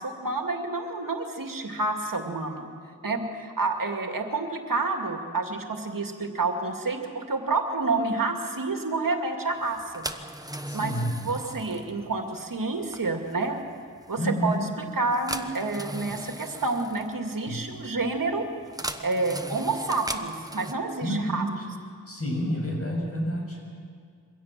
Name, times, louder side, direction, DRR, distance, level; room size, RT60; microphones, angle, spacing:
voice 1, 0.0-2.7 3.0-10.0 10.7-10.9 11.2-13.6 14.1-14.6 15.0-18.5 19.0-21.4, right 3 dB, 70° right, 4 dB, 2.3 m, -29 dB
sound 1, 9.6-20.7, right 1 dB, 10° right, 1.1 m, -39 dB
voice 2, 10.7-11.2 14.2-14.7 17.5-17.6 21.0-21.5 22.1-23.6, equal, 40° left, 0 dB, 6.9 m, -29 dB
23.5 x 16.5 x 7.5 m, 2.2 s
wide cardioid pair, 50°, 34 cm